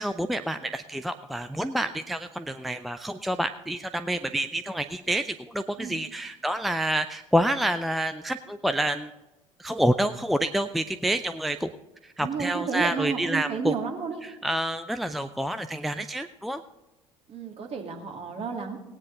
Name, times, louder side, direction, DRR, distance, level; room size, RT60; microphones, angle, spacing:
voice 1, 0.0-9.1 9.6-11.7 12.0-13.8 14.2-16.6, right 1 dB, ahead, 9 dB, 0.5 m, -28 dB
voice 2, 12.2-14.2 17.3-18.8, right 6 dB, 35° right, 3 dB, 2.3 m, -31 dB
18.0 x 9.7 x 3.8 m, 1.1 s
figure-of-eight pair, 60°, 17 cm